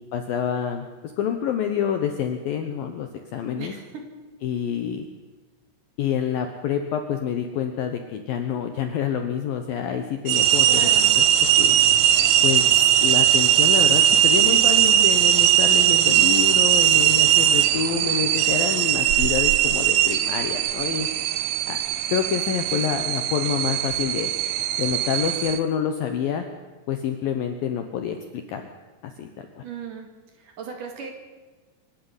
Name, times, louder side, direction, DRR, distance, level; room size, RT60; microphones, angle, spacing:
voice 1, 0.1-0.9 1.2-3.7 4.4-5.1 6.0-10.9 11.2-11.3 11.6-11.8 12.4-21.1 21.7-21.8 22.1-24.3 24.8-26.4 26.9-28.7 29.0-29.6, left 8 dB, 70° left, 6 dB, 2.3 m, -27 dB
voice 2, 3.6-4.0 10.7-11.2 29.6-30.1 30.4-31.1, right 6 dB, 50° right, 4 dB, 3.2 m, -36 dB
sound 1, 10.3-25.6, right 11 dB, 85° right, 3.5 m, -19 dB
25.0 x 12.5 x 9.8 m, 1.3 s
omnidirectional pair, 5.5 m